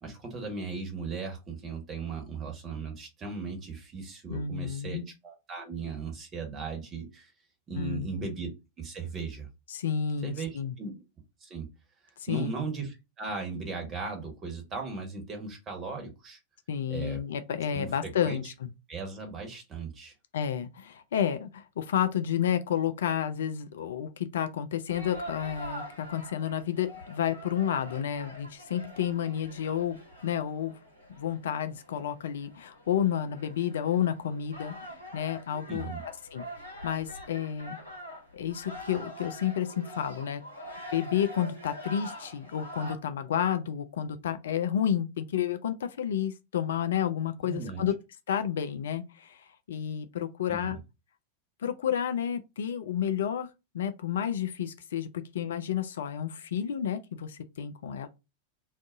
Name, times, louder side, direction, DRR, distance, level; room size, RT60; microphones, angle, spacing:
voice 1, 0.0-7.3 7.7-8.5 8.8-9.5 10.2-10.5 10.8-11.0 11.4-11.7 12.3-16.4 16.9-17.2 17.7-17.9 18.2-18.4 18.9-20.1 35.7-36.0 47.5-47.8 50.5-50.8, right 4 dB, 25° right, 1.2 m, -37 dB
voice 2, 4.3-5.0 7.8-8.1 9.7-10.7 12.2-12.5 16.7-18.7 20.3-30.7 31.1-35.9 36.3-36.5 36.8-37.8 38.3-40.4 40.9-47.9 48.3-50.8 51.6-53.5 53.7-58.1, left 9 dB, 60° left, 0.3 m, -31 dB
sound 1, 24.9-42.9, equal, 85° right, 1.0 m, -44 dB
2.6 x 2.4 x 3.7 m
figure-of-eight pair, 90°, 0 cm